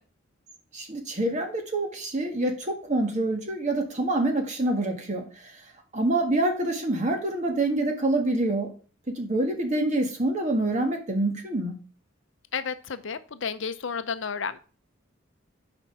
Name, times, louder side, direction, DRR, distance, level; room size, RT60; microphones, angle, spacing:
voice 1, 0.7-5.6 5.9-8.7 9.1-11.8, right 2 dB, 35° right, 4 dB, 1.7 m, -26 dB
voice 2, 12.5-14.6, left 6 dB, 65° left, 12 dB, 0.6 m, -32 dB
7.1 x 5.2 x 6.0 m, 0.37 s
head